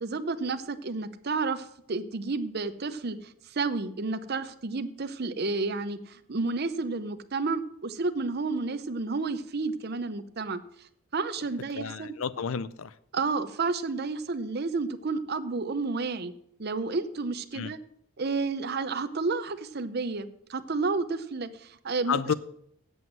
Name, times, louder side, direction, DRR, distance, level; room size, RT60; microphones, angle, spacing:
voice 1, 0.0-10.6 11.1-12.1 13.1-16.3 16.6-17.8 18.2-22.3, right 3 dB, 50° right, 11 dB, 0.7 m, -31 dB
voice 2, 11.8-12.9 17.5-17.7 22.1-22.3, left 6 dB, 70° left, 16 dB, 0.5 m, -30 dB
7.9 x 7.7 x 7.5 m, 0.71 s
head